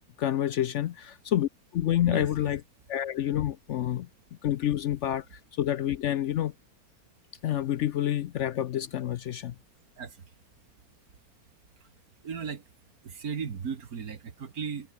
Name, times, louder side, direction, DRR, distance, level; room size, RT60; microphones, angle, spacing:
voice 1, 0.2-2.6 2.9-4.1 4.4-6.5 7.4-9.5, left 11 dB, 65° left, 0.7 m, -28 dB
voice 2, 2.1-2.5 10.0-10.3 11.7-11.9 12.2-12.7 13.0-14.9, right 6 dB, 70° right, 2.1 m, -37 dB
omnidirectional pair, 1.6 m